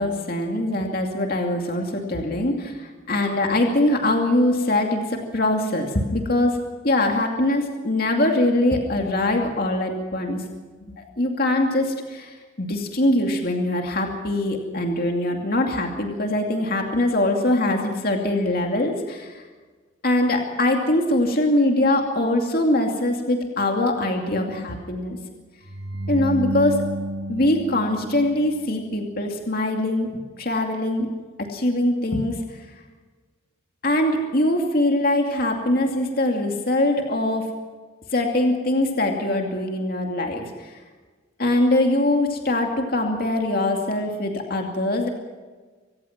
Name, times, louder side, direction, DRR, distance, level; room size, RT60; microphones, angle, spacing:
voice 1, 0.0-6.6 6.8-10.4 11.0-19.4 20.0-25.2 26.1-26.8 27.3-30.1 30.4-31.1 31.4-32.6 33.8-37.5 38.1-40.8 41.4-45.1, left 1 dB, 50° left, 2 dB, 2.5 m, -22 dB
sound 1, 25.6-28.8, right 1 dB, 55° right, 2.3 m, -30 dB
25.0 x 18.5 x 6.0 m, 1.4 s
head